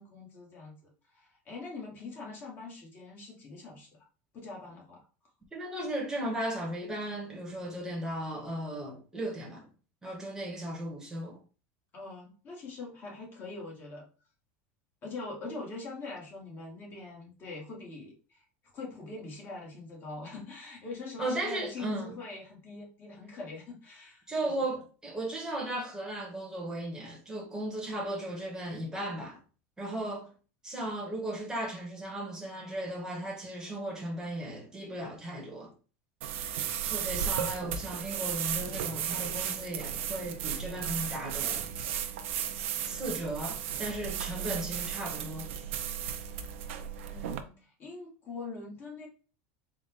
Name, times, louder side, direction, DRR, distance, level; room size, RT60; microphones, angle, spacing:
voice 1, 0.0-3.9 4.3-5.1 11.9-14.1 15.0-18.4 18.7-24.6 47.0-49.1, left 3 dB, 30° left, 1.8 m, -43 dB
voice 2, 5.5-9.7 10.0-11.4 21.2-22.1 24.3-29.4 29.8-30.3 30.6-35.7 36.8-42.0 42.8-45.5, right 1 dB, 10° right, 1.3 m, -36 dB
sound 1, 36.2-47.4, right 9 dB, 85° right, 0.6 m, -35 dB
4.1 x 2.4 x 3.7 m
supercardioid pair, 140°, 7 cm